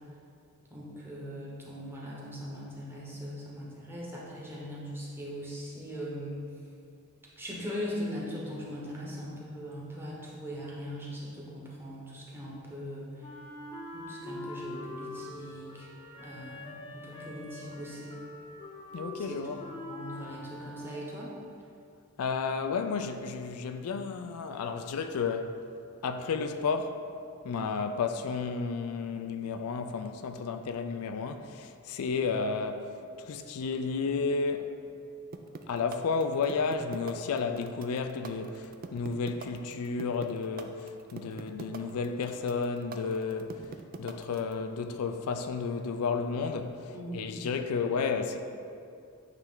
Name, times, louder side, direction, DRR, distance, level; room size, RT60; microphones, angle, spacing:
voice 1, 0.7-6.5 7.4-13.1 13.9-15.9 16.2-18.2 19.2-19.4 19.9-21.3 46.9-47.6, equal, 10° right, 1.1 m, -40 dB
Wind instrument woodwind instrument, 13.2-21.4, left 1 dB, 20° left, 0.8 m, -44 dB
voice 2, 18.9-19.6 22.2-25.6 26.0-27.0 27.4-32.9 33.3-34.7 35.7-43.5 44.0-46.8 47.1-48.4, left 5 dB, 80° left, 0.4 m, -32 dB
sound 1, 35.3-44.5, right 4 dB, 40° right, 0.3 m, -42 dB
8.9 x 3.3 x 3.8 m
head